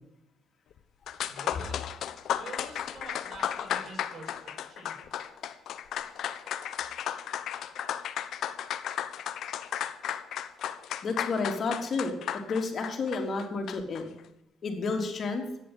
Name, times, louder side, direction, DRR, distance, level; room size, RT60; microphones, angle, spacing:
sound 1, 0.8-0.9 1.1-14.0, left 10 dB, 75° left, 1.1 m, -34 dB
voice 1, 1.3-1.8 2.4-4.9, right 2 dB, 55° right, 0 dB, 7.3 m, -46 dB
voice 2, 11.0-12.1 12.5-14.0 14.6-15.4, left 4 dB, 50° left, 3 dB, 3.6 m, -30 dB
14.5 x 10.5 x 8.1 m, 0.85 s
cardioid pair, 90°, 0 cm